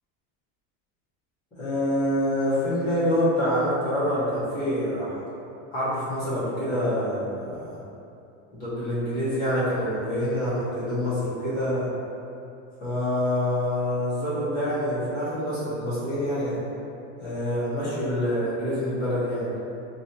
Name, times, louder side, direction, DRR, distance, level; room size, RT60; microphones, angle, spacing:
voice 1, 1.6-5.2 5.7-7.8 8.5-11.9 12.8-16.6 17.2-19.5, equal, 10° left, -12 dB, 0.3 m, -26 dB
2.6 x 2.1 x 3.9 m, 2.6 s
supercardioid pair, 175°, 39 cm